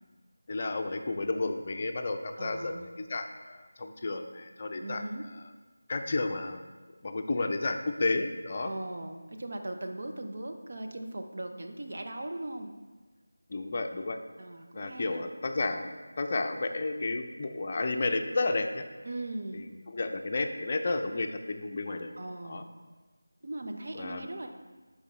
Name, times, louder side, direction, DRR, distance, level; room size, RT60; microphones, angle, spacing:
voice 1, 0.5-5.0 5.9-6.6 7.0-8.7 13.5-14.2 14.7-15.9 16.2-18.8 19.5-22.2 22.4-22.6 23.9-24.3, left 2 dB, 35° left, 5 dB, 0.5 m, -32 dB
voice 2, 2.4-2.8 4.8-5.2 8.6-12.7 14.4-15.3 19.1-19.7 22.2-22.7 23.4-24.5, right 1 dB, 50° right, 4 dB, 0.7 m, -39 dB
12.0 x 4.9 x 3.2 m, 1.3 s
figure-of-eight pair, 165°, 0 cm